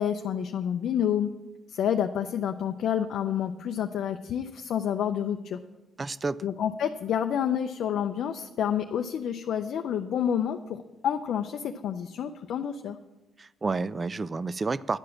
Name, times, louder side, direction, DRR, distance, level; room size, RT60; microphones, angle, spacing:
voice 1, 0.0-1.3 1.7-5.6 6.4-10.8 11.0-13.0, left 9 dB, 70° left, 6 dB, 0.4 m, -29 dB
voice 2, 6.0-6.4 13.4-15.0, right 3 dB, 30° right, 18 dB, 0.3 m, -30 dB
10.5 x 4.9 x 7.2 m, 1.0 s
cardioid pair, 90°, 0 cm